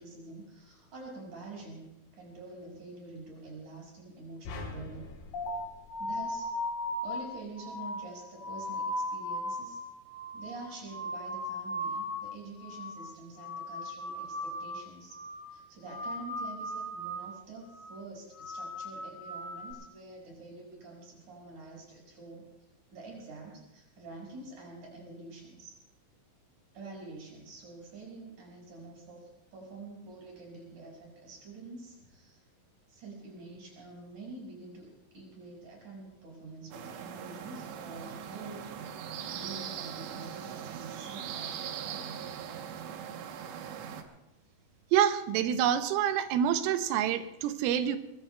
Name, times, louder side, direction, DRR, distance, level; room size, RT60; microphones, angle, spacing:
voice 1, 0.0-5.1 6.0-6.5 7.0-9.8 10.3-15.2 15.5-22.5 22.9-25.7 26.7-32.4 32.9-38.7 39.2-41.5 41.8-42.1, right 3 dB, 40° right, -2 dB, 6.8 m, -47 dB
sound 1, 4.5-6.9, left 3 dB, 80° left, 4.6 m, -44 dB
sound 2, 5.3-12.3 12.6-13.1 13.4-14.8 15.1-15.6 15.9-17.3 17.7-18.0 18.4-19.7, left 1 dB, 25° left, 7.1 m, -37 dB
sound 3, 36.7-44.0, right 8 dB, 75° right, 3.0 m, -40 dB
voice 2, 44.9-48.0, right 9 dB, 90° right, 9 dB, 3.3 m, -27 dB
24.0 x 22.5 x 2.3 m, 0.91 s
omnidirectional pair, 5.7 m